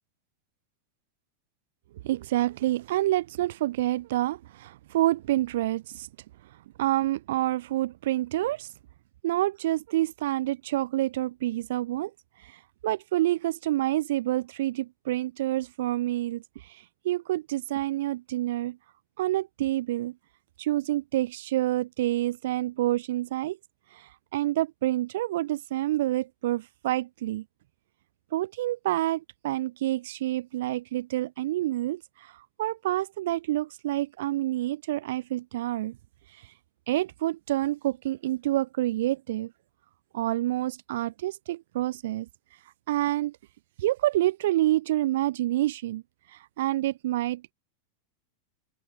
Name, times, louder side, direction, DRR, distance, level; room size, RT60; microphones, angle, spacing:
voice 1, 2.0-6.1 6.8-8.7 9.2-12.1 12.4-18.8 19.2-20.1 20.6-23.6 23.9-27.4 28.3-35.9 36.3-36.5 36.9-39.5 40.1-42.3 42.9-43.4 43.8-46.0 46.3-47.5, right 15 dB, 70° right, 0.3 m, -28 dB
open air
supercardioid pair, 155°, 0 cm